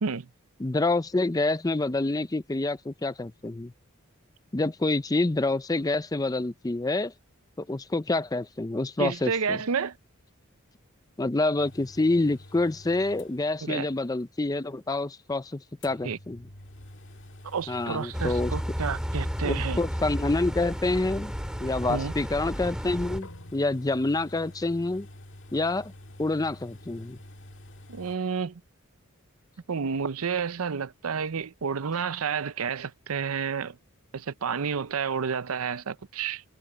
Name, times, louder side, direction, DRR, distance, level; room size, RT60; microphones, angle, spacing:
voice 1, 0.6-3.7 4.5-7.1 7.6-9.6 11.2-16.5 17.7-18.5 19.4-21.3 21.6-25.1 25.5-25.9 26.2-27.2, left 2 dB, 15° left, 0.5 m, -27 dB
voice 2, 9.0-10.0 13.6-13.9 16.0-16.2 17.4-19.8 21.9-22.1 27.9-28.6 29.7-33.8 34.1-36.4, right 6 dB, 75° right, 0.6 m, -30 dB
sound 1, 11.6-13.9 14.2-14.3 14.9-15.0 15.8-28.2, left 1 dB, 60° left, 1.9 m, -48 dB
sound 2, 18.1-23.2, equal, 5° right, 2.3 m, -32 dB
sound 3, 23.2-28.0, left 1 dB, 90° left, 7.7 m, -56 dB
head